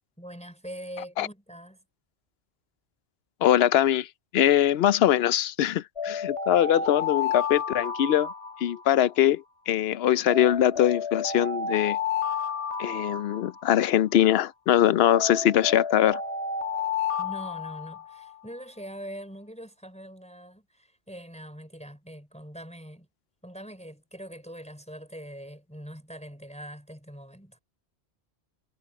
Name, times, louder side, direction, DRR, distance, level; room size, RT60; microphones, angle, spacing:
voice 1, 0.2-1.8 17.2-23.1 23.4-27.6, equal, 5° left, 4.6 m, -42 dB
voice 2, 3.4-4.1 4.3-8.3 8.6-12.0 12.8-16.2, left 11 dB, 75° left, 0.8 m, -22 dB
sound 1, 6.0-9.1 10.3-14.0 15.1-18.4, left 6 dB, 30° left, 1.5 m, -31 dB
omnidirectional pair, 1.1 m